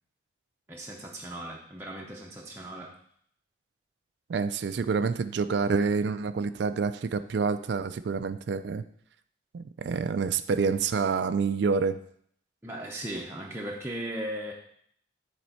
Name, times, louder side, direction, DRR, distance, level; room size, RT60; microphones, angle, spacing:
voice 1, 0.7-2.9 12.6-14.5, right 1 dB, 10° right, -2 dB, 0.6 m, -37 dB
voice 2, 4.3-8.8 9.5-12.0, right 5 dB, 65° right, 11 dB, 0.4 m, -27 dB
9.5 x 4.3 x 4.3 m, 0.65 s
head